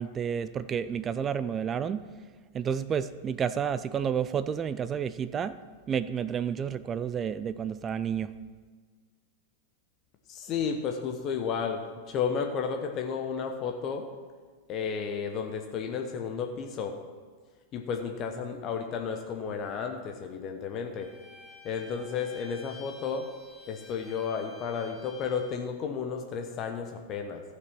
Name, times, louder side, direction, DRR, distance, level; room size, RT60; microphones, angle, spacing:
voice 1, 0.0-2.0 2.5-5.5 5.9-8.3, right 7 dB, 25° right, 14 dB, 0.4 m, -30 dB
voice 2, 10.3-14.1 14.7-17.0 17.7-21.1 21.6-23.3 23.7-27.4, left 6 dB, 35° left, 4 dB, 1.0 m, -32 dB
Bowed string instrument, 21.0-25.6, left 3 dB, ahead, 2.5 m, -51 dB
15.0 x 6.6 x 6.0 m, 1.5 s
figure-of-eight pair, 90°, 0 cm